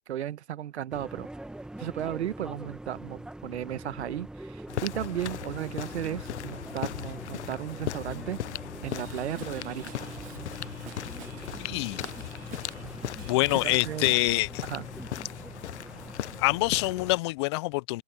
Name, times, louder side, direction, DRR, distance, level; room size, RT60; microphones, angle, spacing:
voice 1, 0.1-1.3 1.8-8.4 8.8-10.2 13.6-14.1 14.6-14.9, right 11 dB, 75° right, 1.6 m, -35 dB
sound 1, 0.9-17.1, right 1 dB, ahead, 1.5 m, -44 dB
sound 2, 4.7-17.2, left 12 dB, 85° left, 0.7 m, -38 dB
Drum kit / Drum, 8.8-14.2, right 19 dB, 25° right, 0.8 m, -48 dB
voice 2, 11.6-12.0 13.3-14.6 16.4-18.0, left 22 dB, 25° left, 0.4 m, -26 dB
hypercardioid pair, 140°, 33 cm